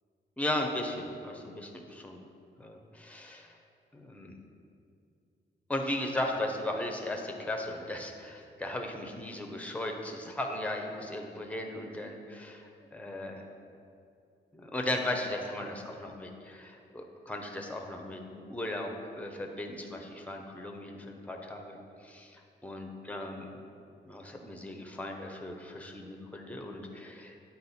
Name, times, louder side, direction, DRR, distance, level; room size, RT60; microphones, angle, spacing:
voice 1, 0.4-2.2 2.6-3.6 3.9-4.4 5.7-13.4 14.5-23.6 24.0-27.4, left 1 dB, 5° left, 2 dB, 0.7 m, -37 dB
8.5 x 4.2 x 4.2 m, 2.4 s
wide cardioid pair, 120°, 19 cm